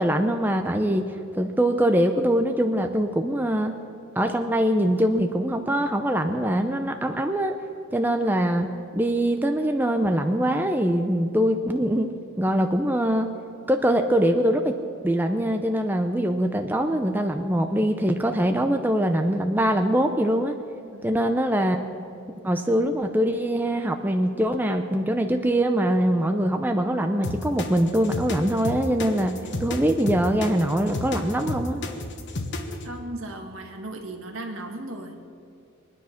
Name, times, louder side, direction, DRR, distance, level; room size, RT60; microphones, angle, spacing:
voice 1, 0.0-3.7 4.2-7.6 7.9-8.7 8.9-12.1 12.4-13.3 13.7-14.7 15.0-20.5 21.0-21.8 22.4-31.8, equal, 10° right, 5 dB, 0.6 m, -23 dB
sound 1, 27.2-32.9, left 2 dB, 55° left, 1.3 m, -31 dB
voice 2, 32.8-35.2, right 1 dB, 70° right, 3 dB, 1.7 m, -36 dB
23.0 x 10.0 x 5.8 m, 2.6 s
head